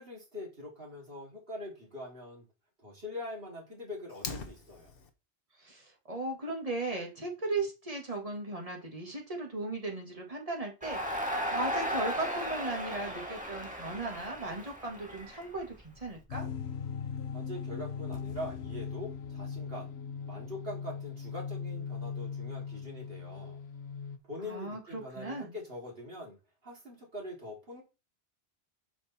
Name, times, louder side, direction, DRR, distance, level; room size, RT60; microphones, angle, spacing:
voice 1, 0.0-2.4 2.8-4.9 17.3-19.9 20.2-23.6 24.3-26.4 26.6-27.8, left 1 dB, 65° right, -2 dB, 3.4 m, -43 dB
Fire, 4.1-5.1, left 4 dB, 60° left, 1.3 m, -41 dB
voice 2, 5.6-16.5 24.4-25.6, right 2 dB, 35° right, 1 dB, 2.1 m, -37 dB
Crowd, 10.8-16.0, equal, 5° right, 1.8 m, -36 dB
sound 1, 16.3-24.2, left 6 dB, 80° left, 1.0 m, -39 dB
7.7 x 5.3 x 4.3 m, 0.28 s
omnidirectional pair, 1.1 m